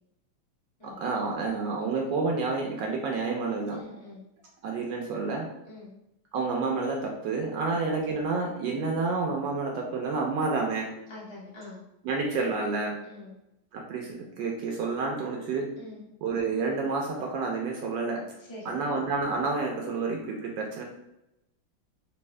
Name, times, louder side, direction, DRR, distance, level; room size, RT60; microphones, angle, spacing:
voice 1, 0.8-3.8 4.6-5.5 6.3-10.9 12.0-13.0 13.7-15.7 16.2-18.2 18.6-20.8, right 4 dB, 70° right, 0 dB, 1.1 m, -29 dB
voice 2, 3.7-4.2 5.6-5.9 7.6-7.8 11.1-11.8 13.0-13.3 15.8-16.0 18.4-18.9, left 2 dB, 35° left, -5 dB, 0.4 m, -45 dB
3.5 x 2.8 x 3.1 m, 0.88 s
omnidirectional pair, 2.3 m